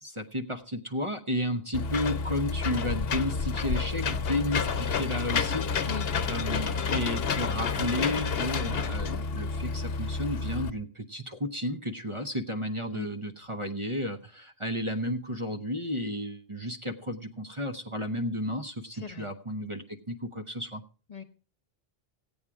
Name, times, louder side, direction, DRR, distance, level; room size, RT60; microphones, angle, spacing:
voice 1, 0.0-5.9 6.3-20.8, left 1 dB, 30° right, 5 dB, 0.8 m, -33 dB
Engine / Mechanisms, 1.7-10.7, left 5 dB, 70° left, 1.0 m, -29 dB
voice 2, 18.9-19.3 21.1-21.2, left 6 dB, 40° left, 8 dB, 1.1 m, -39 dB
15.5 x 8.8 x 4.7 m, 0.38 s
omnidirectional pair, 1.0 m